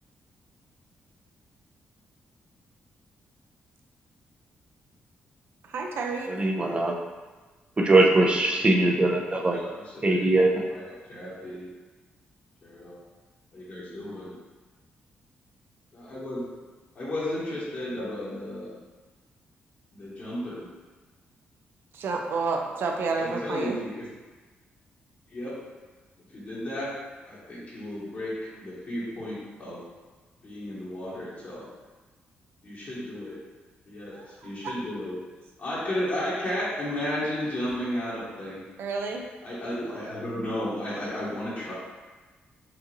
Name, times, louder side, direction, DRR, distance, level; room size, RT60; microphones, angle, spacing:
voice 1, 5.6-6.3 21.9-23.8 34.1-34.7 38.8-39.2, right 4 dB, 70° right, 2 dB, 0.5 m, -30 dB
voice 2, 6.3-6.9 7.8-9.6 10.0-10.5, right 2 dB, 30° right, 1 dB, 0.6 m, -21 dB
voice 3, 8.5-11.7 12.6-13.0 13.5-14.3 15.9-16.4 16.9-18.8 19.9-20.7 23.0-24.0 25.3-25.5 26.3-26.9 27.3-29.8 30.4-31.6 32.6-33.3 33.9-35.1 35.6-38.6 39.4-41.7, left 1 dB, 50° left, -9 dB, 1.4 m, -34 dB
4.7 x 2.6 x 3.0 m, 1.3 s
cardioid pair, 85°, 4 cm